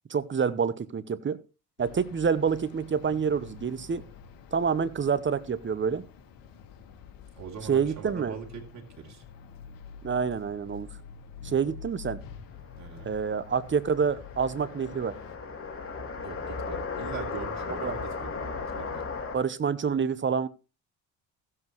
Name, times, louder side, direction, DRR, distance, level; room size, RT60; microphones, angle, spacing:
voice 1, 0.1-1.4 1.8-4.0 4.5-6.0 7.7-8.3 10.0-10.9 11.4-12.2 13.0-15.2 17.8-18.0 19.3-20.5, right 6 dB, 35° right, 0.9 m, -27 dB
sound 1, 1.8-15.4, left 6 dB, 85° left, 1.6 m, -47 dB
voice 2, 7.4-9.2 12.8-13.1 16.2-19.1, right 7 dB, 55° right, 2.9 m, -42 dB
sound 2, 12.6-19.4, left 4 dB, 40° left, 2.8 m, -36 dB
15.5 x 7.7 x 3.1 m
supercardioid pair, 70°, 33 cm